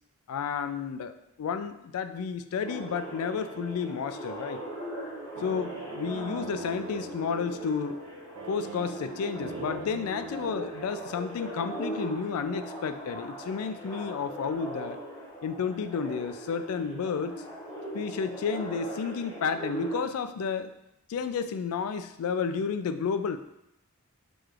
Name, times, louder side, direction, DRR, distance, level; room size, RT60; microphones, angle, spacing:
voice 1, 0.3-4.6 5.4-8.0 8.5-15.0 15.4-17.4 17.9-20.7 21.1-23.4, left 6 dB, 80° left, 10 dB, 0.3 m, -31 dB
sound 1, 2.6-20.0, right 1 dB, 15° left, 0.7 m, -40 dB
sound 2, 2.9-11.9, right 4 dB, 75° right, 0.4 m, -43 dB
6.4 x 3.1 x 2.4 m, 0.83 s
head